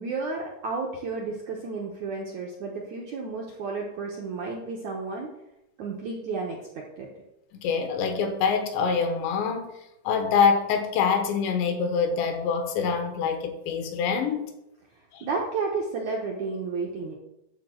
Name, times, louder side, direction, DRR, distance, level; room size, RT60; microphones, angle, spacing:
voice 1, 0.0-5.3 5.8-7.1 15.2-17.1, right 4 dB, 70° right, 1.8 m, -32 dB
voice 2, 7.5-9.7 10.0-14.5 15.1-15.2, left 6 dB, 80° left, 3.4 m, -25 dB
11.5 x 4.0 x 7.7 m
omnidirectional pair, 5.1 m